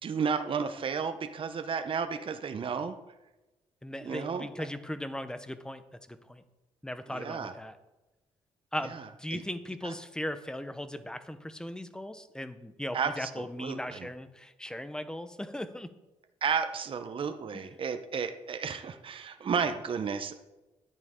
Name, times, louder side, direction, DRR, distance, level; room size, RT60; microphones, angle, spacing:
voice 1, 0.0-3.0 4.0-4.7 7.1-7.5 8.9-9.1 9.3-9.4 9.8-9.9 12.9-14.1 16.4-20.3, right 6 dB, 50° right, 7 dB, 0.8 m, -33 dB
voice 2, 3.8-5.8 6.1-6.4 6.8-7.8 8.7-15.9 17.5-17.6, left 1 dB, 5° left, 11 dB, 0.9 m, -38 dB
11.0 x 9.2 x 3.8 m, 1.1 s
cardioid pair, 80°, 12 cm